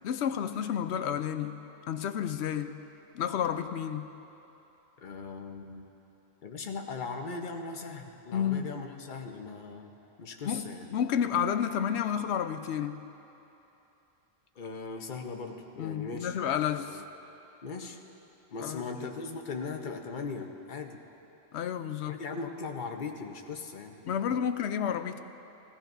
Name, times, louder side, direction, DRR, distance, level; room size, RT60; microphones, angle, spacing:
voice 1, 0.0-1.6 1.9-2.8 3.1-4.0 8.3-8.8 10.5-10.6 10.9-13.0 15.8-17.0 18.6-18.8 21.5-22.2 24.1-25.2, left 8 dB, 85° left, 9 dB, 0.9 m, -30 dB
voice 2, 5.0-5.9 6.4-9.9 10.2-10.9 14.6-16.3 16.8-17.0 17.6-18.0 18.5-21.0 22.1-24.4, left 4 dB, 50° left, 3 dB, 1.0 m, -39 dB
19.5 x 15.0 x 2.6 m, 3.0 s
omnidirectional pair, 1.1 m